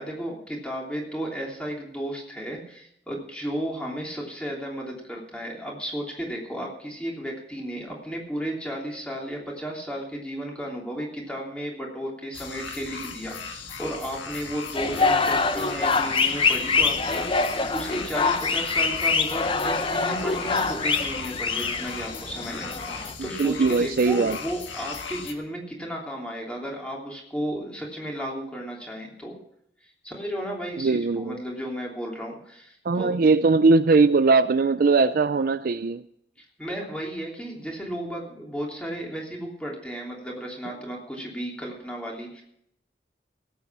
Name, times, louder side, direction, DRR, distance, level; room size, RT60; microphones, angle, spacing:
voice 1, 0.0-29.4 30.0-33.2 36.4-42.4, equal, 5° left, 3.2 m, -34 dB
sound 1, 12.3-25.3, left 5 dB, 85° left, 1.6 m, -37 dB
sound 2, 14.7-23.1, left 4 dB, 30° left, 0.8 m, -25 dB
voice 2, 23.4-24.4 30.8-31.4 32.8-36.0, right 4 dB, 50° right, 0.4 m, -20 dB
17.5 x 8.4 x 6.0 m
head